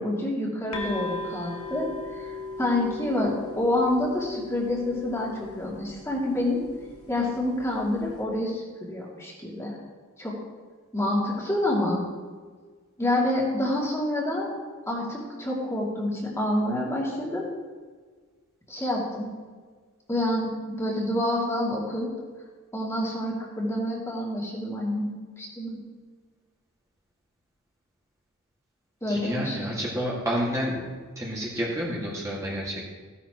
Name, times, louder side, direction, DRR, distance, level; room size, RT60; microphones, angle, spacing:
voice 1, 0.0-1.9 2.2-6.6 7.1-9.8 10.2-10.3 10.9-12.0 13.0-14.5 14.9-17.5 18.7-19.3 20.1-22.1 22.7-25.8 29.0-29.6, left 1 dB, 15° left, -4 dB, 2.5 m, -27 dB
sound 1, 0.7-8.2, left 2 dB, 75° left, 1.5 m, -39 dB
voice 2, 29.1-30.7 31.2-32.9, equal, 15° right, -6 dB, 2.0 m, -29 dB
15.5 x 11.0 x 3.0 m, 1.5 s
head